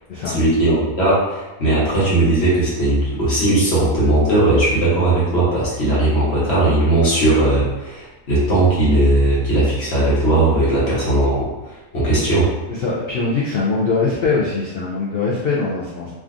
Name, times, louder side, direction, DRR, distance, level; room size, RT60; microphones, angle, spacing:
voice 1, 0.2-12.5, right 2 dB, 50° left, -8 dB, 1.2 m, -18 dB
voice 2, 12.8-16.1, left 4 dB, 85° left, -5 dB, 0.5 m, -21 dB
3.4 x 2.5 x 2.4 m, 1.1 s
omnidirectional pair, 1.6 m